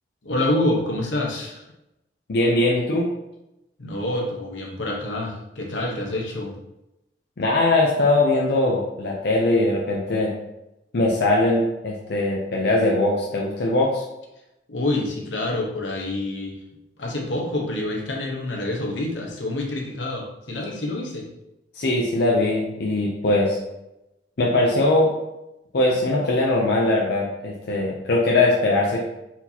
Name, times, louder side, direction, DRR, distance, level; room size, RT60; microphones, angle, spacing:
voice 1, 0.2-1.6 3.8-6.5 14.7-16.5 17.0-21.3, left 1 dB, 85° left, 0 dB, 1.0 m, -27 dB
voice 2, 2.3-3.1 7.4-10.3 10.9-14.0 21.7-23.6 24.4-25.1 25.7-29.1, left 2 dB, 60° left, -2 dB, 0.6 m, -21 dB
4.4 x 2.8 x 4.1 m, 0.90 s
head